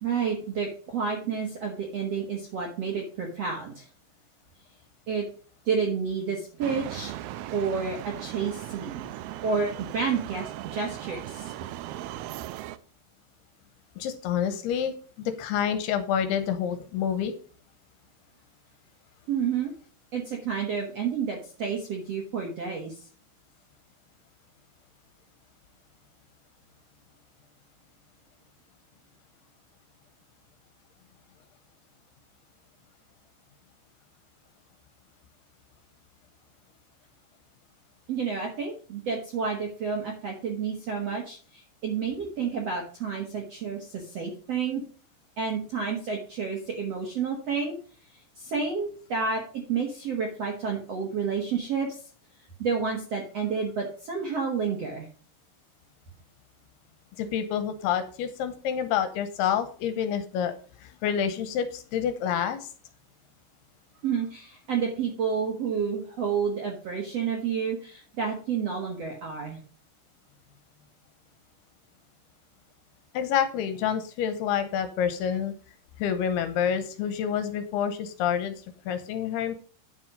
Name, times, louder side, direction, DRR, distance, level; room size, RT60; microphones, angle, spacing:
voice 1, 0.0-3.9 5.1-5.3 5.6-7.2 7.5-9.1 9.4-11.5 19.3-19.7 20.1-22.9 38.1-44.8 45.4-47.7 48.4-52.0 52.6-55.1 64.0-69.6, right 6 dB, 60° right, 1 dB, 1.6 m, -30 dB
sound 1, 6.6-12.8, right 14 dB, 90° right, 2.2 m, -38 dB
voice 2, 14.0-17.3 57.2-60.5 60.8-62.6 73.1-75.5 76.0-78.5 78.9-79.5, left 8 dB, 80° left, 10 dB, 2.6 m, -28 dB
9.6 x 6.1 x 5.3 m, 0.41 s
omnidirectional pair, 5.0 m